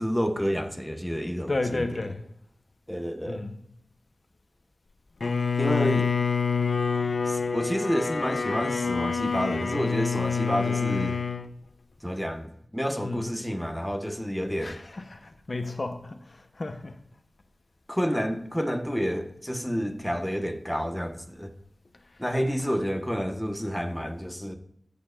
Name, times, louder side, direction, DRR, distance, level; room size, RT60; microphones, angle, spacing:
voice 1, 0.0-2.0 2.9-3.5 5.6-6.1 7.2-11.2 12.0-14.8 17.9-21.5 22.2-24.5, equal, ahead, 1.3 m, -29 dB
voice 2, 1.5-2.3 3.3-3.6 13.0-13.2 14.6-16.9, left 2 dB, 60° left, 1.0 m, -32 dB
Bowed string instrument, 5.2-11.5, left 5 dB, 75° left, 0.6 m, -27 dB
15.5 x 6.8 x 2.6 m
cardioid pair, 45°, 0 cm